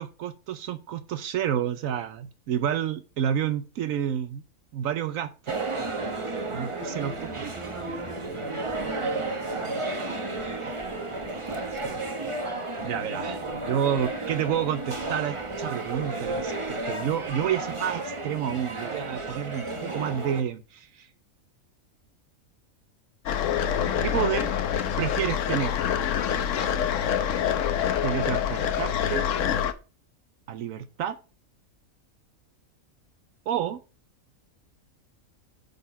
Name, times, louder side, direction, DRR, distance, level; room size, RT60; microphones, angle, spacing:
voice 1, 0.0-4.4 4.7-5.3 6.5-7.5 10.6-10.7 11.7-12.0 12.8-16.5 16.9-21.1 24.0-24.5 25.0-25.8 28.0-29.3 30.5-31.2 33.5-33.8, right 9 dB, 75° right, 11 dB, 1.0 m, -29 dB
sound 1, 5.5-20.4, right 2 dB, 25° right, 0.9 m, -32 dB
voice 2, 6.7-10.2 12.9-13.1 23.4-24.3 27.2-27.8, right 2 dB, 60° right, 0 dB, 1.7 m, -43 dB
sound 2, 23.3-29.7, left 9 dB, 70° left, 1.1 m, -26 dB
8.5 x 4.1 x 5.6 m, 0.33 s
omnidirectional pair, 1.4 m